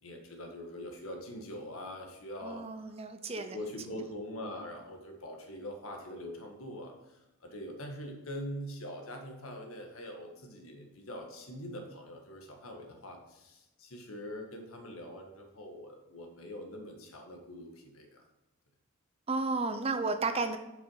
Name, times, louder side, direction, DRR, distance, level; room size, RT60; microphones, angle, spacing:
voice 1, 0.0-2.9 3.3-18.2, left 1 dB, 85° left, 3 dB, 1.6 m, -43 dB
voice 2, 2.4-3.7 4.4-4.6 19.3-20.6, right 3 dB, 30° right, 8 dB, 0.6 m, -33 dB
7.8 x 5.9 x 5.6 m, 0.97 s
head